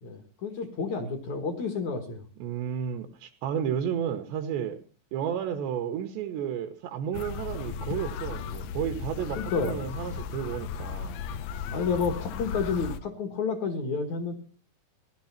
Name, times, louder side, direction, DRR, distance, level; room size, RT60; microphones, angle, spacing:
voice 1, 0.0-2.2 9.4-9.7 11.7-14.3, left 5 dB, 60° left, 7 dB, 2.1 m, -30 dB
voice 2, 2.4-4.8 5.1-11.2, right 8 dB, 75° right, 7 dB, 2.9 m, -32 dB
sound 1, 7.1-13.0, left 7 dB, 80° left, 2.4 m, -36 dB
16.0 x 11.5 x 5.7 m, 0.41 s
omnidirectional pair, 5.5 m